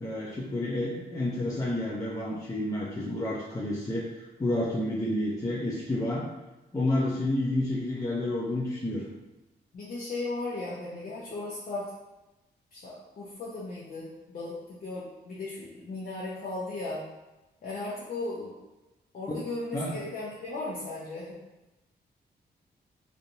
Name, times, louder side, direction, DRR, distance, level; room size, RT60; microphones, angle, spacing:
voice 1, 0.0-6.2 6.7-9.1 19.3-19.4 19.7-19.9, left 1 dB, 20° left, -6 dB, 0.5 m, -30 dB
voice 2, 9.7-11.9 12.7-17.0 17.6-18.5 19.1-21.4, left 2 dB, 55° left, -8 dB, 0.8 m, -36 dB
3.3 x 2.8 x 2.6 m, 1.0 s
cardioid pair, 105°, 18 cm